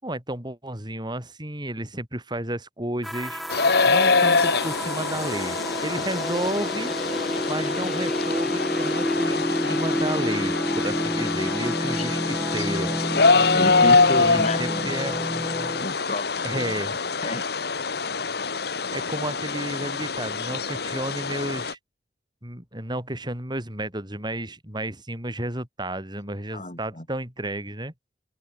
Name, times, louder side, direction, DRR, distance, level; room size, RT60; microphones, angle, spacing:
voice 1, 0.0-3.4 3.8-6.9 7.5-12.9 14.2-15.3 16.4-17.0 18.9-21.8 22.4-27.9, right 1 dB, 25° right, 6.8 m, -32 dB
sound 1, 3.0-15.8, equal, ahead, 5.2 m, -29 dB
sound 2, 3.5-21.7, left 4 dB, 65° left, 1.8 m, -24 dB
voice 2, 13.5-14.9 15.8-16.8 17.2-17.5 26.5-27.1, left 1 dB, 40° left, 7.0 m, -32 dB
open air
head